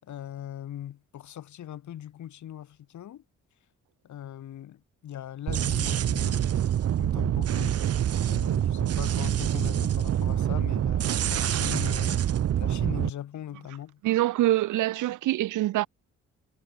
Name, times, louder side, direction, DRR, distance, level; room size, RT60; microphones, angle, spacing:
voice 1, 0.0-3.2 4.0-6.6 7.0-7.8 8.2-12.3 12.6-14.0, left 11 dB, 70° left, 6.9 m, -40 dB
sound 1, 5.5-13.1, right 10 dB, 55° right, 1.0 m, -26 dB
voice 2, 14.0-15.9, right 15 dB, 85° right, 1.6 m, -25 dB
cardioid pair, 90°, 30 cm